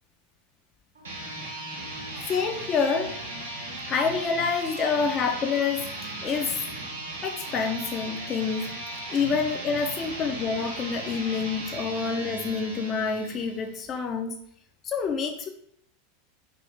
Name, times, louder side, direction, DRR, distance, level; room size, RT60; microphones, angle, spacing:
sound 1, 0.9-13.7, right 2 dB, 80° right, 0.7 m, -37 dB
voice 1, 2.3-3.2 3.9-6.6 7.2-8.7 9.1-14.4 14.8-15.5, left 5 dB, 35° left, 4 dB, 0.4 m, -27 dB
2.6 x 2.6 x 3.2 m, 0.67 s
hypercardioid pair, 90°, 0 cm